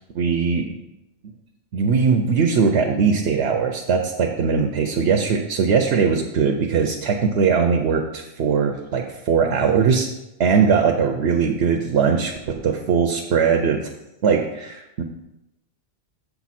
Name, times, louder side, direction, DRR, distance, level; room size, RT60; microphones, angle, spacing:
voice 1, 0.2-0.8 1.2-1.3 1.7-10.1 10.4-12.3 12.6-13.8 14.2-15.0, right 6 dB, 80° right, 4 dB, 0.9 m, -20 dB
6.9 x 5.9 x 4.2 m, 0.93 s
omnidirectional pair, 1.1 m